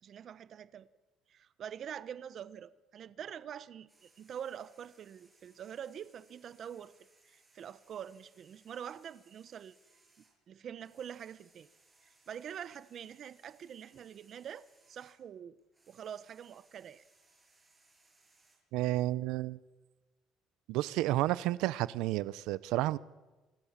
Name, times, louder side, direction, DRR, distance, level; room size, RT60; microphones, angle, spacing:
voice 1, 0.0-0.9 1.3-6.9 7.2-9.7 10.5-11.7 12.0-15.5 15.9-17.0, right 9 dB, 40° right, 1.0 m, -45 dB
sound 1, 3.9-15.2 15.6-18.6, right 3 dB, 10° right, 7.0 m, -68 dB
voice 2, 18.7-19.6 20.7-23.0, right 16 dB, 80° right, 0.8 m, -31 dB
29.0 x 25.0 x 7.4 m
cardioid pair, 170°, 0 cm